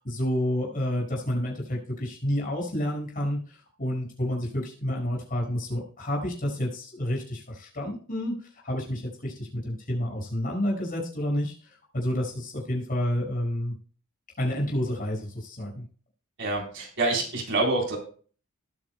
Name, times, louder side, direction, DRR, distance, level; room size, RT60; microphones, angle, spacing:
voice 1, 0.0-8.3 8.6-13.7 14.4-15.8, left 1 dB, 40° left, -2 dB, 5.4 m, -29 dB
voice 2, 16.4-18.0, right 2 dB, 55° right, -1 dB, 3.8 m, -26 dB
20.0 x 9.1 x 2.2 m, 0.42 s
head